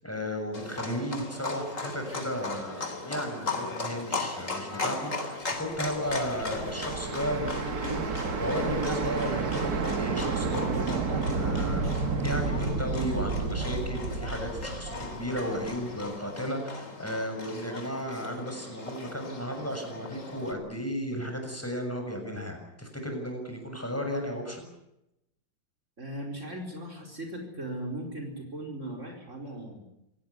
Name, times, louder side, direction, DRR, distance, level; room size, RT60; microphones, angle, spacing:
voice 1, 0.0-24.6, equal, 5° left, 4 dB, 6.9 m, -34 dB
Livestock farm animals working animals, 0.5-20.5, left 3 dB, 40° left, 3.8 m, -37 dB
sound 1, 5.8-15.8, right 4 dB, 55° right, 1.9 m, -31 dB
voice 2, 26.0-29.8, right 1 dB, 40° right, 3 dB, 5.1 m, -38 dB
27.0 x 18.0 x 9.8 m, 0.86 s
omnidirectional pair, 2.0 m